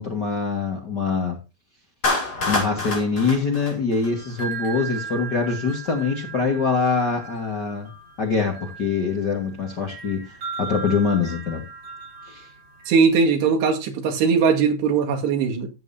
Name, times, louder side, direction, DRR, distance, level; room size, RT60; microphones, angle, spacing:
voice 1, 0.0-1.4 2.5-7.9 8.2-11.6 12.3-12.5, left 4 dB, 85° left, 0.9 m, -24 dB
Clapping, 2.0-4.4, left 2 dB, 25° left, 2.6 m, -26 dB
sound 1, 4.0-13.0, right 5 dB, 25° right, 4.6 m, -37 dB
voice 2, 12.9-15.7, right 5 dB, 75° right, 4.1 m, -20 dB
15.5 x 7.4 x 2.7 m
omnidirectional pair, 4.9 m